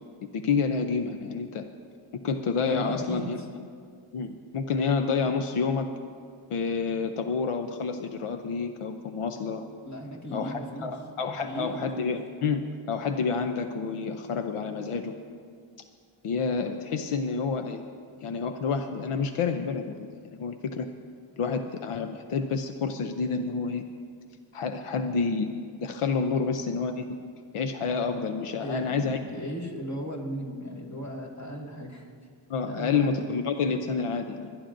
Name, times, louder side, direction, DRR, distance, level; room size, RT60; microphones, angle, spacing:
voice 1, 0.3-1.7 2.2-3.4 4.1-5.9 6.5-9.6 10.3-15.2 16.2-17.8 18.2-20.9 21.4-23.8 24.5-27.1 27.5-29.2 32.5-34.6, left 5 dB, 85° left, 7 dB, 0.7 m, -29 dB
voice 2, 2.6-3.5 9.9-10.9 11.3-12.1 28.6-32.1 32.7-33.2, equal, 35° left, -2 dB, 2.0 m, -36 dB
28.5 x 10.0 x 2.6 m, 2.1 s
wide cardioid pair, 110°, 50 cm